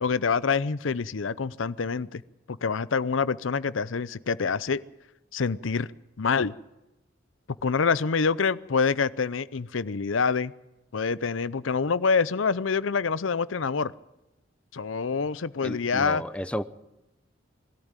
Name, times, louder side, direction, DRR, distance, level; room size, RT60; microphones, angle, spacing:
voice 1, 0.0-2.2 2.5-4.8 5.3-5.9 6.2-6.5 7.6-10.5 10.9-13.9 14.7-16.2, left 5 dB, 85° left, 0.7 m, -26 dB
voice 2, 15.6-16.6, equal, 5° left, 0.7 m, -32 dB
21.5 x 13.5 x 9.0 m
head